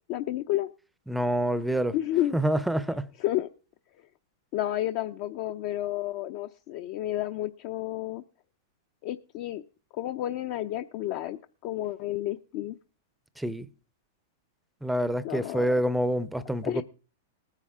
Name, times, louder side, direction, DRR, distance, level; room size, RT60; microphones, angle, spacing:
voice 1, 0.1-0.7 1.9-2.4 3.2-3.5 4.5-8.2 9.0-9.6 9.9-12.8 15.2-15.7 16.6-16.8, left 14 dB, 45° left, 0.6 m, -31 dB
voice 2, 1.1-1.9 2.3-3.1 13.4-13.7 14.8-16.8, right 1 dB, 5° right, 0.6 m, -27 dB
19.0 x 9.9 x 3.6 m
supercardioid pair, 150°, 0 cm